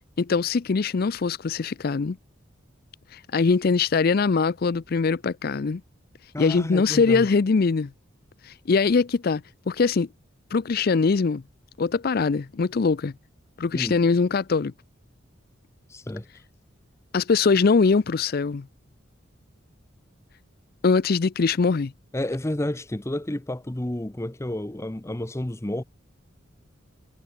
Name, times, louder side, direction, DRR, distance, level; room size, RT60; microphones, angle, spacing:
voice 1, 0.2-2.2 3.1-5.8 6.4-7.9 8.4-9.4 9.7-10.1 10.5-11.4 11.8-13.1 13.6-14.7 17.1-18.6 20.8-21.9, left 4 dB, 50° left, 0.4 m, -22 dB
voice 2, 6.3-7.3 13.7-14.0 15.9-16.3 22.1-25.8, left 1 dB, 15° left, 0.7 m, -30 dB
head